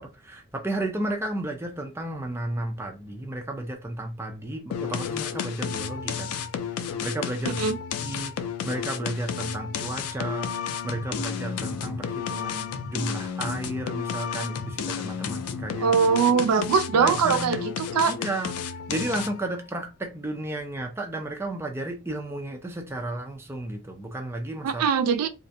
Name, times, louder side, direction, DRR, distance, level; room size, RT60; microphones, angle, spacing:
voice 1, 0.0-6.3 6.7-7.6 8.0-8.3 8.6-10.6 10.8-15.9 16.9-17.7 18.1-24.8, right 1 dB, 10° right, 0.4 m, -33 dB
sound 1, 4.7-19.5, left 7 dB, 80° left, 0.3 m, -32 dB
voice 2, 15.8-18.1 24.6-25.3, right 6 dB, 90° right, 0.4 m, -22 dB
2.4 x 2.1 x 2.5 m
head